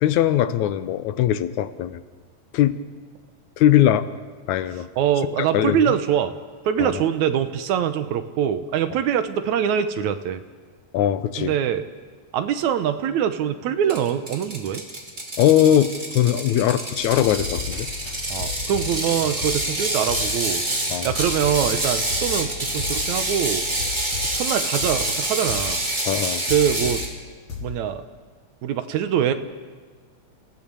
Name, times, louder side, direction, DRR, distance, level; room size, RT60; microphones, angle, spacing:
voice 1, 0.0-2.0 2.5-2.8 3.6-4.1 4.5-4.9 5.5-5.9 6.8-7.0 10.9-11.5 15.4-17.9 20.9-21.1 26.1-26.4, left 11 dB, 85° left, 12 dB, 2.2 m, -20 dB
voice 2, 5.0-6.3 6.7-10.4 11.4-11.9 12.3-14.8 18.3-20.6 21.0-23.7 24.3-25.8 26.5-27.0 27.6-28.0 28.6-29.3, right 9 dB, 80° right, 10 dB, 2.4 m, -23 dB
Ratchet pawl, 13.9-27.1, right 1 dB, 15° right, 2.2 m, -27 dB
sound 1, 17.0-27.1 27.5-27.9, left 6 dB, 60° left, 4.5 m, -35 dB
29.0 x 16.0 x 6.9 m, 1.5 s
omnidirectional pair, 3.3 m